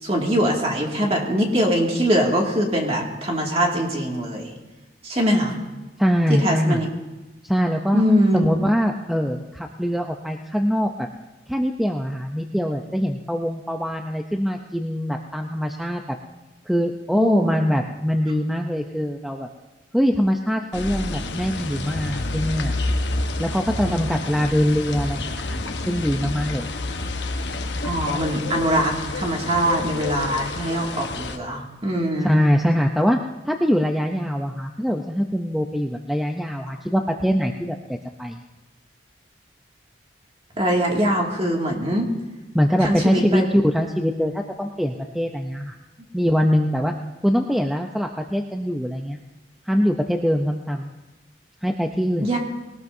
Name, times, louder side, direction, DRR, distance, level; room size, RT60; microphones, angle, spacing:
voice 1, 0.0-4.5 5.0-5.6 6.4-6.9 7.9-8.4 17.1-17.6 23.8-24.0 27.8-32.5 40.6-42.1 42.8-43.4 52.2-52.4, equal, 35° right, -1 dB, 2.3 m, -22 dB
voice 2, 6.0-6.8 7.4-8.0 8.3-11.1 11.5-16.2 16.7-19.5 19.9-22.7 23.4-25.6 25.9-26.7 32.2-38.4 42.5-45.8 46.1-46.9 47.2-49.2 49.6-50.9 51.6-52.3, equal, ahead, 2 dB, 0.6 m, -23 dB
sound 1, 20.7-31.4, left 2 dB, 75° left, 1.1 m, -29 dB
20.5 x 18.5 x 2.7 m, 1.1 s
head